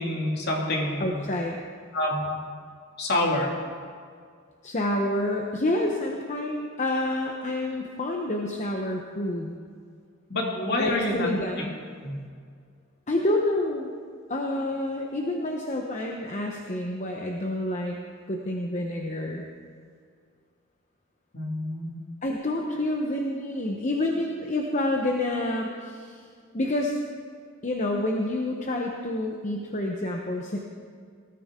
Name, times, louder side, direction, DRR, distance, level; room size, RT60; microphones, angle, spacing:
voice 1, 0.0-1.1 1.9-2.4 3.0-3.6 10.3-11.3 12.0-12.2 21.3-21.9, left 1 dB, 50° left, -1 dB, 2.5 m, -27 dB
voice 2, 1.0-1.6 4.6-9.5 10.8-11.7 13.1-13.9 14.3-18.0 18.3-19.5 22.2-26.3 26.5-27.0 27.6-30.6, left 1 dB, 35° left, 1 dB, 0.9 m, -28 dB
19.5 x 13.0 x 3.7 m, 2.1 s
head